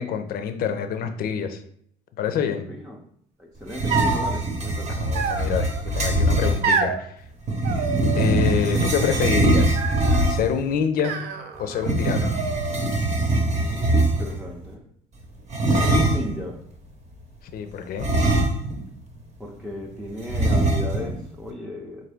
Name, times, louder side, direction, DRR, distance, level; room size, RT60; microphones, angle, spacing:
voice 1, 0.0-1.6 2.2-2.6 5.0-5.7 5.9-7.2 8.2-9.8 10.3-11.1 11.6-12.2 17.5-18.1, left 7 dB, 60° left, 8 dB, 0.5 m, -26 dB
voice 2, 2.7-3.0 3.4-5.0 13.5-14.8 15.7-16.6 19.4-22.0, left 1 dB, 5° right, -2 dB, 0.5 m, -36 dB
sound 1, 3.7-6.6 7.4-10.6 11.8-14.4 15.5-16.4 18.0-18.9 19.2-19.3 20.3-21.2, right 1 dB, 40° right, 0.8 m, -22 dB
sound 2, 3.9-4.3 5.1-5.8 6.6-7.0 7.6-8.5 8.7-9.3 9.7-10.3 11.0-11.9 12.2-13.0, right 5 dB, 70° right, 0.5 m, -28 dB
3.9 x 2.7 x 3.4 m, 0.66 s
cardioid pair, 110°, 17 cm